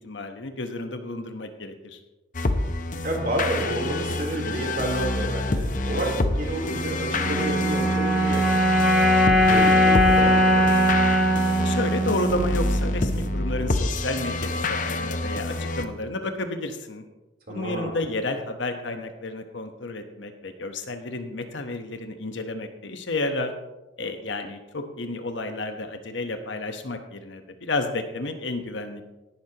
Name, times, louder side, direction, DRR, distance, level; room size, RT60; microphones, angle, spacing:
voice 1, 0.0-2.0 11.6-17.0 17.5-23.5 24.0-29.0, left 2 dB, 80° left, 6 dB, 1.1 m, -31 dB
sound 1, 2.3-15.8, left 2 dB, 45° left, 0.8 m, -27 dB
voice 2, 3.0-8.4 9.2-10.7 17.5-18.0, right 1 dB, 50° right, -1 dB, 3.5 m, -30 dB
sound 2, 7.1-13.5, equal, 5° right, 3.2 m, -21 dB
17.5 x 11.5 x 2.9 m, 1.1 s
head